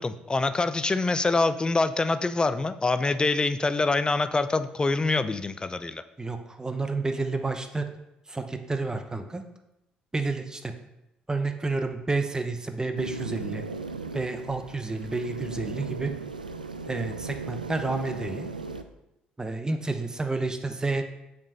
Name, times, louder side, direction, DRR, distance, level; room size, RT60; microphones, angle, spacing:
voice 1, 0.0-6.0, left 3 dB, 20° left, 12 dB, 0.6 m, -25 dB
voice 2, 6.2-7.9 8.3-9.4 10.1-10.7 11.3-13.7 14.1-16.1 16.9-18.5 19.4-21.1, right 3 dB, 15° right, 7 dB, 1.0 m, -30 dB
sound 1, 13.0-18.8, right 4 dB, 85° right, 0.4 m, -37 dB
7.2 x 5.2 x 5.6 m, 0.90 s
figure-of-eight pair, 50°, 4 cm